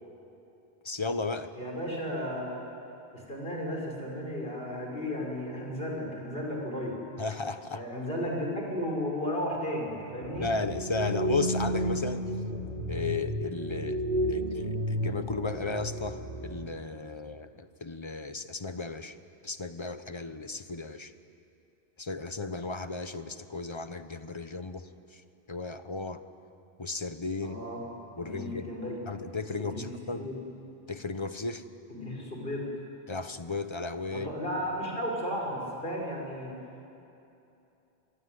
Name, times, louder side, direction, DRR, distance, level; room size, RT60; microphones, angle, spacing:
voice 1, 0.8-1.5 7.2-7.8 10.4-12.2 12.9-14.0 14.3-19.1 19.4-21.1 22.0-25.2 25.5-26.2 26.8-27.6 28.2-28.7 29.1-30.3 30.9-31.6 33.1-34.3, left 3 dB, 30° left, 10 dB, 1.1 m, -34 dB
voice 2, 1.5-2.7 3.1-7.0 7.7-10.5 27.4-27.8 28.2-29.0 29.6-30.4 31.9-32.7 34.1-36.5, equal, 65° left, -1 dB, 6.0 m, -34 dB
sound 1, 10.2-16.7, equal, 55° right, 3.7 m, -32 dB
26.5 x 21.5 x 9.6 m, 2.8 s
omnidirectional pair, 1.0 m